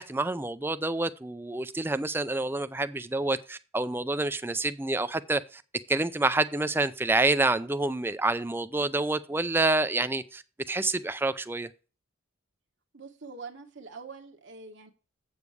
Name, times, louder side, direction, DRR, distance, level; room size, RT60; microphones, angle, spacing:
voice 1, 0.0-5.6 5.9-10.4 10.7-11.7, right 2 dB, 10° right, 0.4 m, -28 dB
voice 2, 12.9-14.9, right 4 dB, 60° right, 1.1 m, -44 dB
8.1 x 7.0 x 4.7 m
head